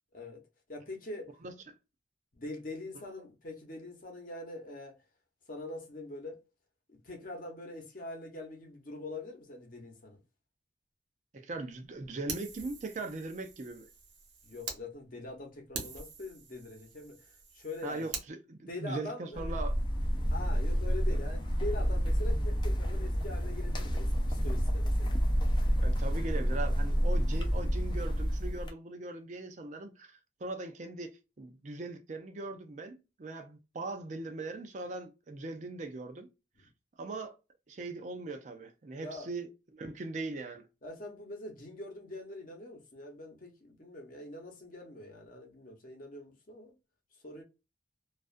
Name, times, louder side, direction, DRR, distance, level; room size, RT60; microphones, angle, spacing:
voice 1, 0.7-1.3 2.3-5.0 5.5-6.4 6.9-10.2 14.4-18.1 18.7-19.6 20.3-25.2 39.0-39.3 40.8-46.7 47.2-47.4, left 2 dB, 50° left, 0.8 m, -43 dB
voice 2, 1.4-1.7 11.3-13.9 17.8-19.7 21.1-21.2 25.8-31.1 31.4-36.3 37.0-37.4 37.7-40.6, right 2 dB, 40° right, 0.4 m, -40 dB
Fire, 12.3-14.8 15.3-15.4 15.7-18.3, right 5 dB, 80° right, 0.9 m, -44 dB
sound 1, 19.3-28.7, equal, 25° left, 0.5 m, -29 dB
2.4 x 2.3 x 2.4 m
head